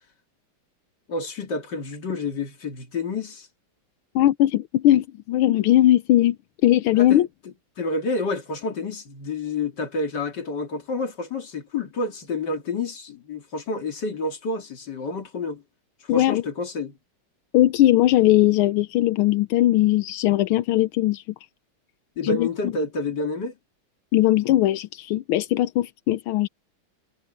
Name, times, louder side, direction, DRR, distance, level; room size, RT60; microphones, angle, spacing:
voice 1, 1.1-3.5 7.0-7.3 7.8-15.6 16.0-16.9 22.2-23.6, left 3 dB, 55° left, 3.0 m, -29 dB
voice 2, 4.1-6.4 6.6-7.3 16.1-16.4 17.5-21.2 22.2-22.5 24.1-26.5, left 14 dB, 85° left, 1.5 m, -19 dB
omnidirectional pair, 2.3 m